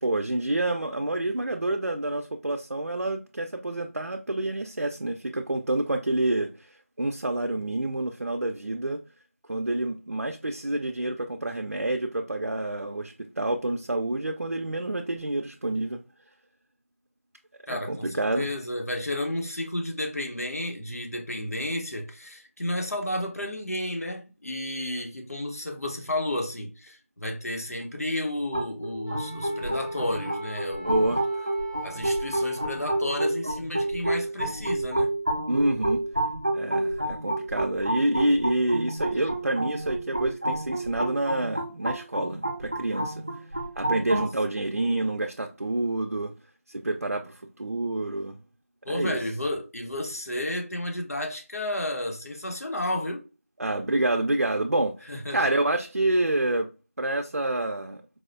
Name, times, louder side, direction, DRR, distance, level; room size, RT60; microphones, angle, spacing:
voice 1, 0.0-9.0 9.5-16.0 17.7-18.5 30.8-31.5 35.5-36.0 36.5-43.2 43.8-46.3 46.7-48.4 48.9-49.2 53.6-56.7 57.0-58.0, right 2 dB, 90° right, 0.5 m, -28 dB
voice 2, 17.7-31.2 31.8-35.1 48.8-53.2 55.1-55.5, left 1 dB, 90° left, 1.0 m, -32 dB
sound 1, 28.5-44.3, right 1 dB, 30° right, 0.4 m, -30 dB
Wind instrument woodwind instrument, 29.0-33.3, right 4 dB, 45° left, 0.6 m, -42 dB
4.7 x 2.1 x 2.6 m
figure-of-eight pair, 175°, 8 cm